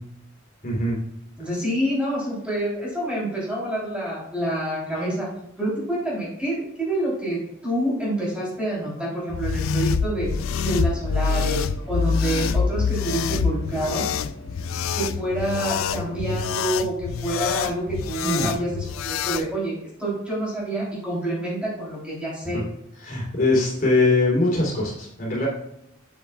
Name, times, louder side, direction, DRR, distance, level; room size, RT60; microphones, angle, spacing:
voice 1, 0.6-1.0 5.0-5.2 18.2-18.5 22.5-22.6 23.0-25.5, left 2 dB, 45° left, -4 dB, 3.2 m, -22 dB
voice 2, 1.4-5.3 5.6-10.3 10.6-14.1 14.9-22.6, right 1 dB, 5° right, -6 dB, 3.2 m, -27 dB
sound 1, 9.3-19.5, left 6 dB, 80° left, 0.4 m, -26 dB
sound 2, 10.4-16.6, left 1 dB, 25° left, 2.0 m, -42 dB
8.8 x 8.1 x 2.3 m, 0.78 s
head